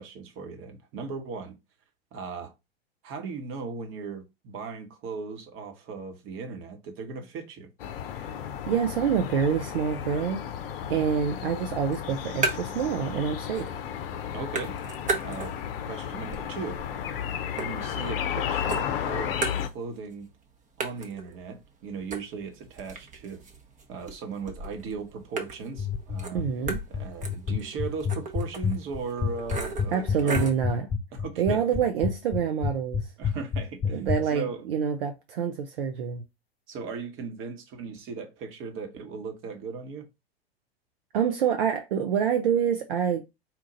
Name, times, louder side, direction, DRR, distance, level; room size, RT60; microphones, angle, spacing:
voice 1, 0.0-1.5 2.1-2.5 3.0-7.7 14.3-14.7 15.2-15.5 15.9-16.8 17.5-19.4 19.7-20.3 20.8-23.4 23.9-26.4 26.9-30.5 31.2-31.8 33.2-34.6 36.7-40.1, right 5 dB, 40° right, 1.2 m, -37 dB
sound 1, 7.8-19.7, left 9 dB, 65° left, 0.6 m, -33 dB
voice 2, 8.7-10.4 10.9-13.7 26.3-26.8 29.9-30.9 31.4-33.0 33.9-36.2 41.1-43.2, right 7 dB, 65° right, 0.7 m, -26 dB
sound 2, 11.9-12.9 13.2-13.9 14.2-15.8 16.2-18.3 18.7-20.1 20.4-20.5 20.8-30.7, right 3 dB, 25° right, 0.8 m, -36 dB
sound 3, 25.8-34.2, left 6 dB, 20° left, 0.6 m, -27 dB
4.5 x 2.5 x 3.9 m
figure-of-eight pair, 90°, 31 cm